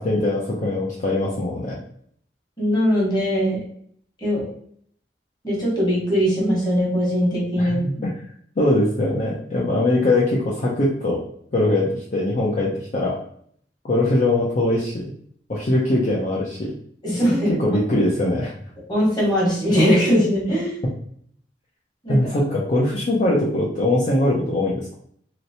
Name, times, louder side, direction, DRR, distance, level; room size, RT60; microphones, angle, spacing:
voice 1, 0.0-1.8 7.6-8.1 8.6-11.2 11.5-13.2 13.8-15.1 15.5-16.7 17.5-18.5 22.1-24.9, left 1 dB, 45° left, -5 dB, 0.6 m, -21 dB
voice 2, 2.6-3.6 4.2-4.4 5.4-7.8 17.0-17.5 18.9-20.8 22.0-22.4, equal, 25° left, -5 dB, 1.3 m, -20 dB
3.1 x 3.0 x 2.7 m, 0.64 s
head